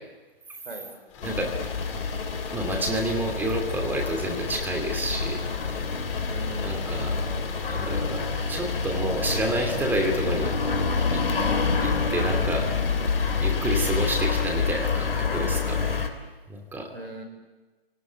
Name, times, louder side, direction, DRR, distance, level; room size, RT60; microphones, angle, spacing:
voice 1, 0.6-1.0 6.3-7.1 16.9-17.2, right 1 dB, 70° right, 6 dB, 5.5 m, -40 dB
sound 1, 1.1-14.8, left 7 dB, 30° left, 2.8 m, -40 dB
sound 2, 1.2-16.1, left 4 dB, 70° left, 3.2 m, -27 dB
voice 2, 2.5-5.4 6.6-7.2 7.7-10.5 11.1-11.2 11.8-12.7 13.4-16.1 16.5-16.9, right 1 dB, 5° right, 3 dB, 2.8 m, -29 dB
26.0 x 18.5 x 9.4 m, 1.2 s
hypercardioid pair, 145°, 30 cm